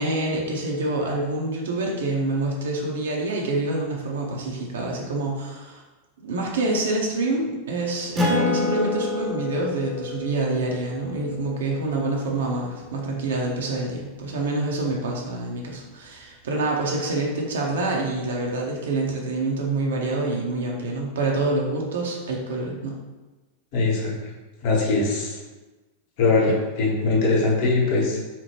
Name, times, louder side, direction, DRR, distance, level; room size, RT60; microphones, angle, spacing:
voice 1, 0.0-5.8 6.2-22.9 26.4-26.5, right 2 dB, 60° right, -1 dB, 0.4 m, -26 dB
Acoustic guitar, 8.2-13.1, left 2 dB, 15° right, 0.5 m, -29 dB
voice 2, 23.7-24.1 24.6-25.4 26.2-28.2, left 3 dB, 50° left, -3 dB, 0.7 m, -21 dB
2.8 x 2.0 x 3.0 m, 1.2 s
figure-of-eight pair, 90°, 0 cm